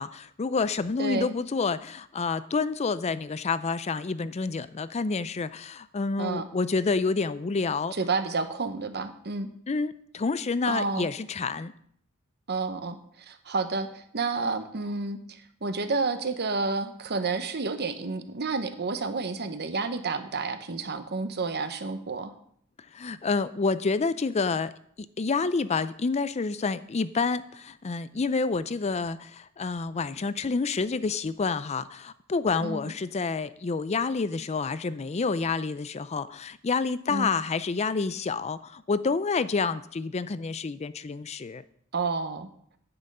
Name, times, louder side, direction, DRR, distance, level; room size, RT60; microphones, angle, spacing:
voice 1, 0.0-7.9 9.7-11.7 22.9-24.7 25.2-41.6, left 4 dB, 30° left, 15 dB, 0.4 m, -28 dB
voice 2, 1.0-1.3 6.2-6.5 7.9-9.5 10.7-11.1 12.5-22.3 32.6-32.8 37.1-37.3 41.9-42.5, right 4 dB, 50° right, 9 dB, 1.0 m, -30 dB
9.7 x 8.9 x 5.4 m, 0.66 s
head